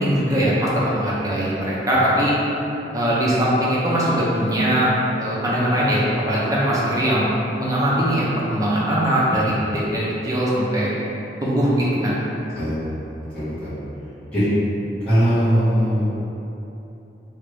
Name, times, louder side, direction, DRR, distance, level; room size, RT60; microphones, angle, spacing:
voice 1, 0.0-2.3 2.9-4.9 5.2-7.3 7.6-10.9 11.4-12.2, equal, 20° right, -7 dB, 0.6 m, -21 dB
voice 2, 12.5-13.0 13.3-13.7 14.3-14.5 15.0-16.1, equal, 5° left, -15 dB, 1.3 m, -20 dB
3.3 x 2.5 x 3.2 m, 2.9 s
head